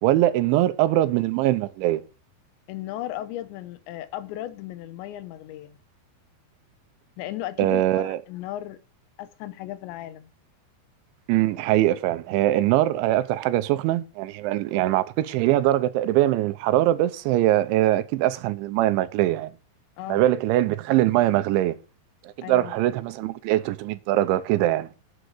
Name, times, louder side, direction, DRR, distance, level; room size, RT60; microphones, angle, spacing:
voice 1, 0.0-2.0 7.6-8.2 11.3-19.5 20.1-21.8 22.2-24.9, right 14 dB, 90° right, 3.2 m, -22 dB
voice 2, 2.7-5.8 7.2-8.8 9.2-10.3 20.0-20.2 22.4-22.7, left 14 dB, 85° left, 3.1 m, -35 dB
9.6 x 7.3 x 6.6 m
omnidirectional pair, 5.2 m